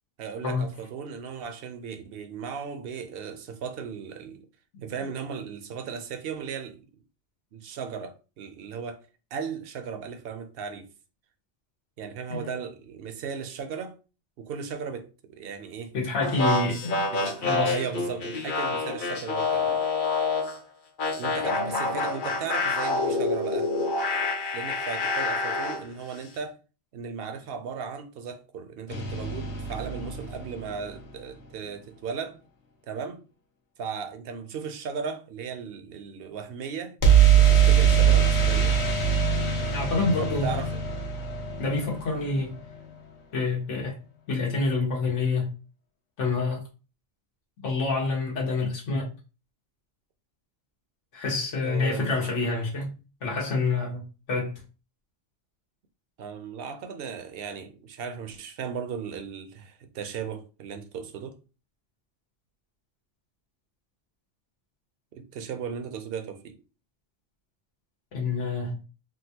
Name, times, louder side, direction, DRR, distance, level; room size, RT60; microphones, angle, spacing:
voice 1, 0.2-4.5 4.8-7.0 7.5-9.0 9.3-10.9 12.0-14.0 14.4-16.0 17.1-19.8 21.2-23.7 24.5-26.6 26.9-32.4 32.9-33.3 33.8-37.0 37.4-38.8 40.2-40.8 51.6-52.2 56.2-61.4 65.1-66.6, right 6 dB, 65° right, 0.7 m, -36 dB
voice 2, 15.9-17.1 17.4-17.7 39.6-40.5 41.6-42.6 43.3-44.0 44.3-45.5 46.2-46.6 47.6-49.1 51.1-54.0 54.3-54.5 68.1-68.8, left 3 dB, 90° left, 1.4 m, -27 dB
sound 1, 16.2-20.6 21.0-25.8, left 3 dB, 55° left, 0.7 m, -27 dB
sound 2, 28.9-30.9 37.0-42.8, right 8 dB, 70° left, 1.1 m, -22 dB
3.8 x 2.3 x 2.7 m
omnidirectional pair, 1.2 m